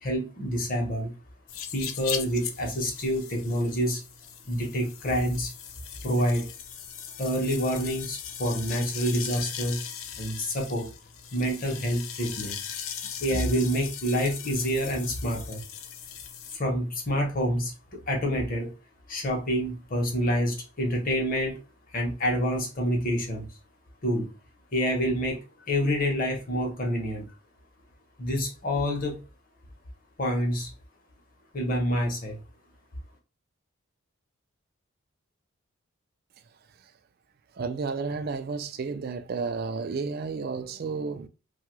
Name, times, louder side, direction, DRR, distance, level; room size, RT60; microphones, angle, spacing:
voice 1, 0.0-1.1 1.7-4.0 4.5-5.5 6.0-6.5 7.2-9.8 10.2-10.9 11.3-12.6 13.2-15.6 16.5-18.7 19.1-21.6 21.9-23.5 24.0-24.3 24.7-27.2 28.2-29.2 30.2-30.7 31.5-32.4, equal, 40° left, 0.9 m, -27 dB
sound 1, 1.5-16.6, left 8 dB, 75° left, 0.5 m, -39 dB
voice 2, 37.5-41.3, right 4 dB, 45° right, 0.3 m, -32 dB
2.7 x 2.3 x 3.0 m
head